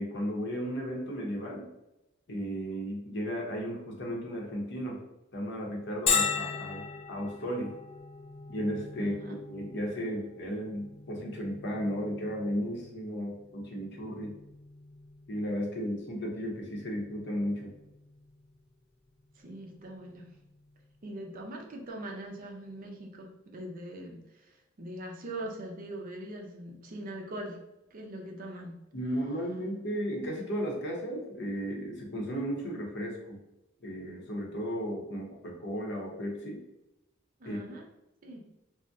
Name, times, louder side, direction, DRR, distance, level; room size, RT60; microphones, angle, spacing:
voice 1, 0.0-1.7 2.3-5.0 5.3-7.7 8.5-14.3 15.3-17.7 28.9-33.4 33.8-36.6 37.4-37.6, equal, 60° left, -1 dB, 0.7 m, -34 dB
Bell, 6.1-21.5, left 6 dB, 30° left, 0.3 m, -39 dB
voice 2, 9.0-9.3 19.4-20.3 21.0-27.7 27.9-28.7 37.4-37.8 38.2-38.4, right 1 dB, 45° right, 0 dB, 0.5 m, -42 dB
2.6 x 2.0 x 3.4 m, 0.93 s
head